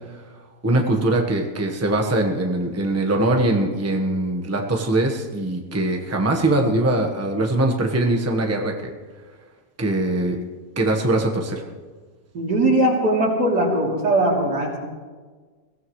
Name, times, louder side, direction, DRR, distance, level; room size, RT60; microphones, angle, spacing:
voice 1, 0.6-8.9 9.8-10.4 10.8-11.6, right 2 dB, 10° right, 2 dB, 1.2 m, -22 dB
voice 2, 12.3-14.8, right 1 dB, 80° right, -3 dB, 3.7 m, -20 dB
22.0 x 16.0 x 3.2 m, 1.4 s
omnidirectional pair, 1.7 m